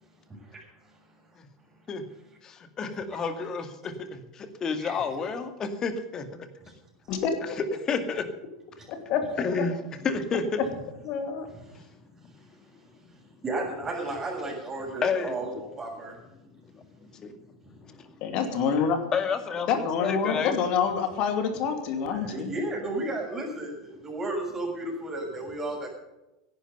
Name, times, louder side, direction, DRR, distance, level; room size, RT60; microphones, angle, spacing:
voice 1, 0.3-0.6 4.8-5.1 6.6-6.7 8.8-8.9 13.4-16.2 22.1-25.9, right 2 dB, 20° right, -1 dB, 7.1 m, -33 dB
voice 2, 2.4-6.3 7.9-8.2 9.4-9.8 10.0-10.6 15.0-15.3 17.2-17.3 19.1-19.7 20.0-20.6, left 5 dB, 30° left, 9 dB, 2.1 m, -29 dB
voice 3, 7.1-7.6 9.1-9.4 11.0-11.5 18.2-19.0 19.7-22.5, left 6 dB, 45° left, 7 dB, 2.7 m, -27 dB
16.5 x 11.5 x 5.5 m, 0.95 s
figure-of-eight pair, 80°, 2 cm